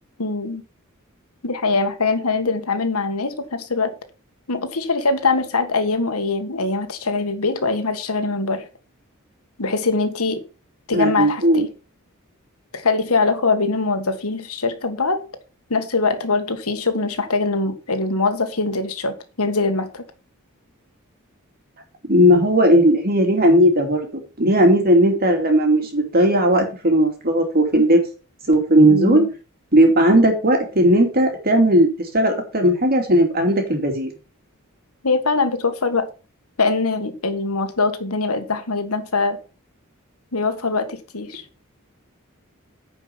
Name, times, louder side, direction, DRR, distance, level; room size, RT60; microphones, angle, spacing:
voice 1, 0.2-0.6 1.4-3.9 4.5-8.7 9.6-10.4 10.9-11.7 12.7-15.2 15.7-20.0 28.9-29.3 35.0-36.1 36.6-39.4 40.3-41.4, left 3 dB, 90° left, 1.6 m, -22 dB
voice 2, 10.9-11.6 22.1-24.1 24.4-28.0 28.5-29.2 29.7-31.9 32.1-34.1, equal, 45° right, 2.6 m, -16 dB
10.0 x 5.2 x 5.6 m
head